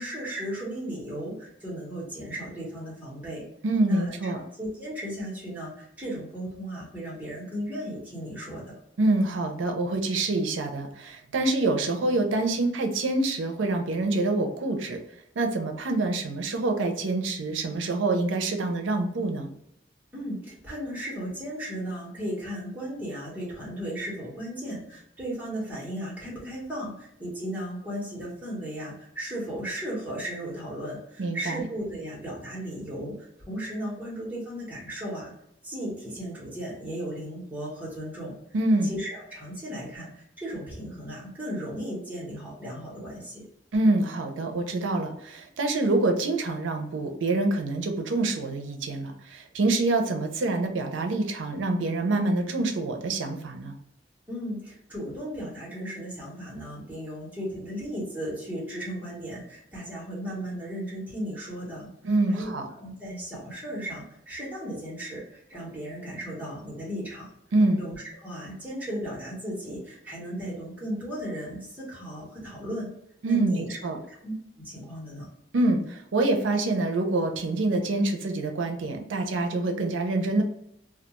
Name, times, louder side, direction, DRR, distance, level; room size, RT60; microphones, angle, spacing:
voice 1, 0.0-3.5 3.9-8.8 20.1-35.3 35.6-38.3 38.8-43.4 54.3-61.9 62.3-67.3 67.8-72.9 73.3-75.3, equal, 10° right, -6 dB, 1.0 m, -36 dB
voice 2, 3.6-4.4 9.0-15.0 15.4-19.5 31.2-31.6 38.5-39.0 43.7-53.8 62.0-62.7 67.5-67.8 73.2-74.0 75.5-80.4, right 2 dB, 85° right, 4 dB, 0.5 m, -26 dB
2.3 x 2.3 x 2.9 m, 0.78 s
head